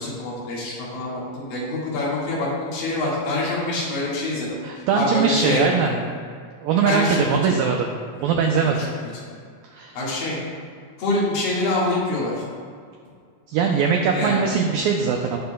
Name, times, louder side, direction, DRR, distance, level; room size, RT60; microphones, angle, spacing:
voice 1, 0.0-4.6 4.9-5.9 6.9-7.6 8.6-8.9 9.3-9.4 9.9-10.4 11.0-12.4 14.1-14.4, left 2 dB, 60° left, -6 dB, 3.3 m, -25 dB
voice 2, 4.6-6.0 6.6-7.9 8.2-8.8 9.7-10.0 13.5-15.4, right 6 dB, 90° right, 2 dB, 2.0 m, -21 dB
18.0 x 6.6 x 2.3 m, 2.1 s
omnidirectional pair, 4.9 m